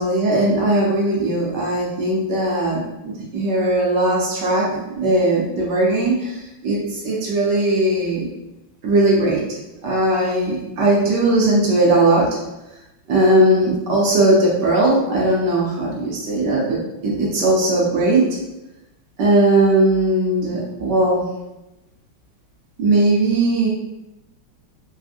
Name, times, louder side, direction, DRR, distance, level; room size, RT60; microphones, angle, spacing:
voice 1, 0.0-8.3 8.8-9.4 9.8-12.3 13.1-18.2 19.2-21.2 22.8-23.7, right 1 dB, 65° right, -4 dB, 1.2 m, -18 dB
3.5 x 2.5 x 2.4 m, 0.97 s
omnidirectional pair, 2.2 m